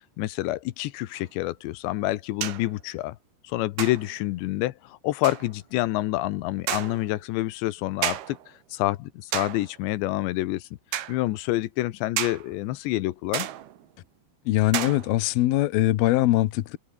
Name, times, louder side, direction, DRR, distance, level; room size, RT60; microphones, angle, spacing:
voice 1, 0.2-3.2 3.4-8.4 8.7-10.7 11.1-13.5, left 17 dB, 85° left, 3.2 m, -28 dB
sound 1, 1.2-1.3 2.4-2.8 3.8-4.3 5.2-5.5 6.7-7.1 8.0-8.5 9.3-9.8 10.9-11.2 12.2-12.5 13.3-13.9 14.7-15.3, right 12 dB, 65° right, 3.5 m, -32 dB
voice 2, 14.5-16.8, left 16 dB, 70° left, 2.6 m, -22 dB
open air
omnidirectional pair, 5.0 m